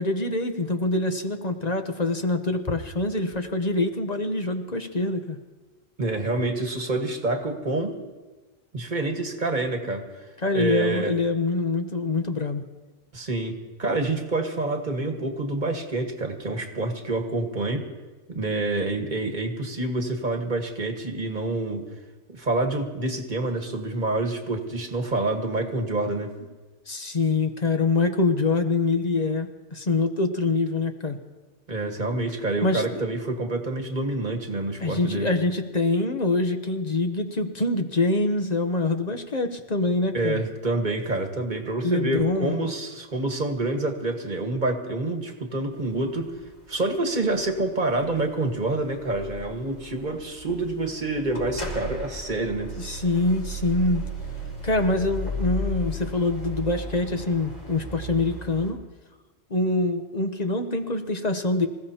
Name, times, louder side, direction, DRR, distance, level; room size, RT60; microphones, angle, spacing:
voice 1, 0.0-5.4 10.4-12.6 26.9-31.2 32.6-33.0 34.8-40.4 41.8-42.6 52.8-54.0 54.6-58.8 59.5-61.7, left 2 dB, 35° left, 6 dB, 0.9 m, -25 dB
voice 2, 6.0-7.9 8.7-10.1 10.5-11.1 13.1-17.9 18.3-21.8 22.3-26.3 31.7-35.3 40.1-46.3 46.7-52.7, right 2 dB, 35° right, 4 dB, 1.6 m, -27 dB
sound 1, 45.7-58.7, equal, 80° left, 5.7 m, -36 dB
26.0 x 15.5 x 2.9 m, 1.2 s
omnidirectional pair, 1.3 m